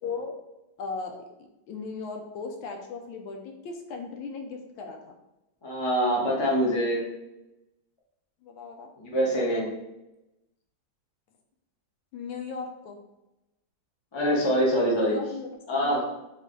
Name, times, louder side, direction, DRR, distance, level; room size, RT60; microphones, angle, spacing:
voice 1, 0.0-0.4 0.8-1.3 1.7-5.1 8.4-8.9 12.1-13.0 15.0-16.1, left 4 dB, 75° left, 3 dB, 1.3 m, -37 dB
voice 2, 5.6-7.0 9.0-9.7 14.1-15.2 15.7-16.1, equal, 40° left, -4 dB, 0.3 m, -24 dB
3.6 x 3.2 x 3.8 m, 0.93 s
omnidirectional pair, 2.4 m